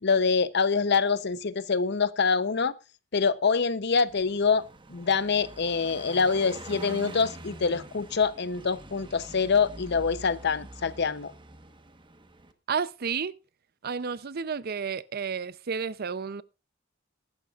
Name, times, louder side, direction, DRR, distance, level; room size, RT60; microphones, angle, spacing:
voice 1, 0.0-2.7 3.1-11.3, left 5 dB, 60° left, 0.7 m, -25 dB
Car passing by, 4.1-12.5, right 2 dB, 25° right, 1.2 m, -45 dB
voice 2, 12.7-13.3 13.8-16.4, right 6 dB, 50° right, 0.6 m, -31 dB
22.0 x 11.5 x 2.4 m
head